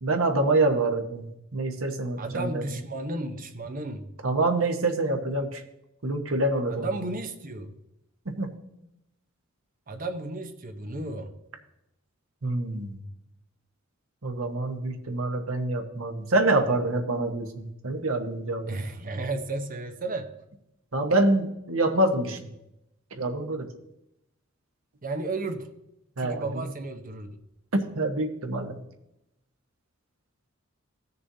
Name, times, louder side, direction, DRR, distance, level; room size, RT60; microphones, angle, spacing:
voice 1, 0.0-2.6 4.2-5.6 6.0-6.9 8.2-8.5 12.4-13.0 14.2-18.9 20.9-22.5 23.1-23.7 26.2-26.6 27.7-28.8, right 2 dB, 75° right, 4 dB, 1.2 m, -26 dB
voice 2, 2.2-4.1 6.7-7.8 9.9-11.3 18.7-20.3 25.0-25.7 26.2-27.4, right 2 dB, 40° right, 7 dB, 0.9 m, -33 dB
17.0 x 6.7 x 2.8 m, 0.87 s
head